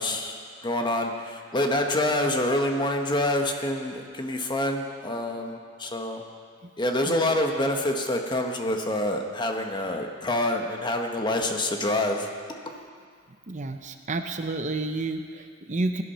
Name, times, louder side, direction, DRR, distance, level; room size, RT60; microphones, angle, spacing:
voice 1, 0.0-6.2 6.8-12.3, left 1 dB, 25° left, 3 dB, 1.3 m, -27 dB
voice 2, 13.5-16.0, right 2 dB, 40° right, 7 dB, 0.7 m, -30 dB
18.0 x 12.0 x 5.6 m, 2.1 s
head